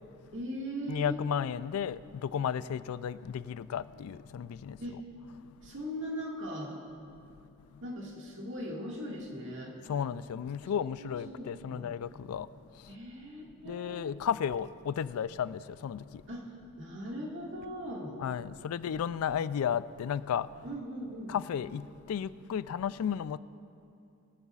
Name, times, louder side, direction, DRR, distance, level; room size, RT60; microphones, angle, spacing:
voice 1, 0.3-1.2 4.8-5.1 5.6-6.8 7.8-9.8 10.9-11.9 12.9-14.0 16.3-18.2 20.6-21.4, equal, 60° right, 1.9 m, -39 dB
voice 2, 0.9-4.8 5.4-5.5 7.7-7.8 9.9-12.9 13.6-16.2 18.2-20.6 21.3-23.4, left 8 dB, 85° left, 0.3 m, -34 dB
21.5 x 11.0 x 2.4 m
head